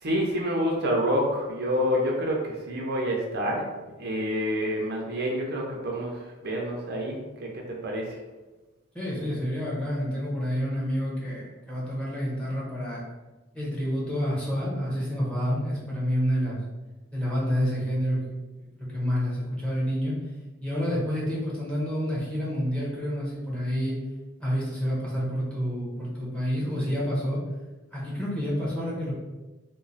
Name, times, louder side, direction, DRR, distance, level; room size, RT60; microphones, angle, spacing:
voice 1, 0.0-3.7 4.0-8.2, equal, 50° right, -1 dB, 0.5 m, -28 dB
voice 2, 8.9-13.0 13.5-16.6 17.1-20.1 20.6-24.0 24.4-27.4 27.9-29.1, equal, 5° left, -7 dB, 0.9 m, -28 dB
3.0 x 2.2 x 3.9 m, 1.2 s
head